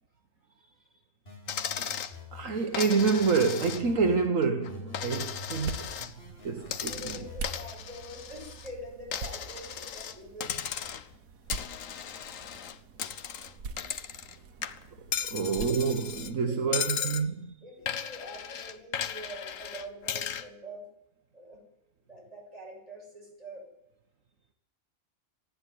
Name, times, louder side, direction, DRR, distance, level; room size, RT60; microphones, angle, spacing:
voice 1, 0.6-1.0 6.9-10.7 15.5-15.8 16.4-17.1 17.6-20.9 21.3-21.7 22.1-23.7, equal, 25° right, 7.3 m, -45 dB
sound 1, 1.3-4.3 4.7-7.7, left 3 dB, 45° left, 4.6 m, -47 dB
Coin (dropping), 1.5-2.2 2.7-4.1 4.4-6.1 6.7-8.7 9.1-10.2 10.4-11.1 11.5-14.4 14.6-16.3 16.7-17.3 17.9-20.5, left 8 dB, 70° left, 1.3 m, -36 dB
voice 2, 2.3-5.9 6.4-7.2 15.2-17.3, right 5 dB, 70° right, 1.6 m, -27 dB
sound 2, 5.2-16.3, right 5 dB, 90° right, 1.5 m, -44 dB
27.0 x 10.5 x 9.4 m
omnidirectional pair, 1.4 m